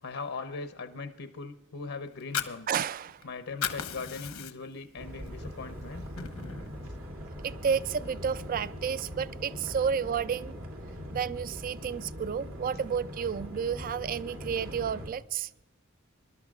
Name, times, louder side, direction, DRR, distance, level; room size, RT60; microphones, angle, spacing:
voice 1, 0.0-2.7 3.2-6.0, left 4 dB, 70° left, 0.7 m, -39 dB
Fire, 2.1-3.2 3.5-4.8 5.3-5.4 5.8-6.8, left 8 dB, 90° left, 1.0 m, -35 dB
voice 2, 2.7-3.3 7.4-10.6 11.1-15.5, right 7 dB, 40° right, 0.3 m, -31 dB
sound 1, 5.0-15.1, equal, 75° right, 2.6 m, -41 dB
24.5 x 12.0 x 2.4 m
head